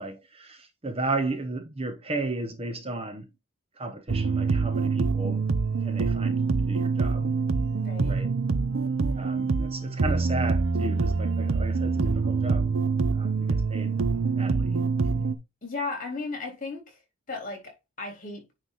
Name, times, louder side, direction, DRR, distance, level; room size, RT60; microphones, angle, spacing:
voice 1, 0.0-3.2 3.8-5.4 5.8-7.3 8.1-8.3 9.1-12.7 13.1-14.1 14.4-14.9 15.1-15.2, right 2 dB, 25° right, 0.8 m, -34 dB
sound 1, 4.1-15.4, right 4 dB, 65° right, 0.7 m, -25 dB
voice 2, 7.8-8.2 15.6-17.0 17.3-18.4, left 3 dB, 35° left, 3.5 m, -35 dB
9.4 x 3.3 x 4.1 m
head